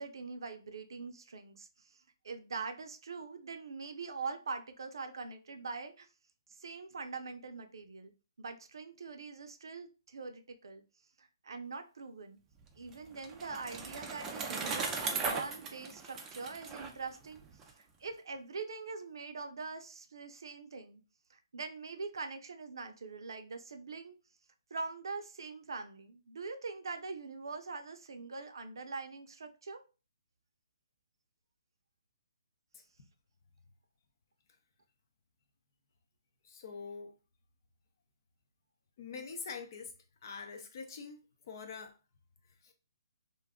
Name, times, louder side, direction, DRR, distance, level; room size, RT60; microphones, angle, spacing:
voice 1, 0.0-6.1 6.5-8.1 8.4-10.8 11.2-12.4 12.8-17.4 17.8-21.0 21.3-24.1 24.7-29.8, right 4 dB, 70° right, 0.5 m, -43 dB
Bicycle, 12.6-17.7, right 4 dB, 15° right, 0.4 m, -38 dB
voice 2, 36.4-37.1 39.0-39.9 40.2-41.2 41.4-41.9 42.6-42.7, left 5 dB, 50° left, 0.6 m, -44 dB
2.5 x 2.3 x 3.6 m
hypercardioid pair, 150°, 2 cm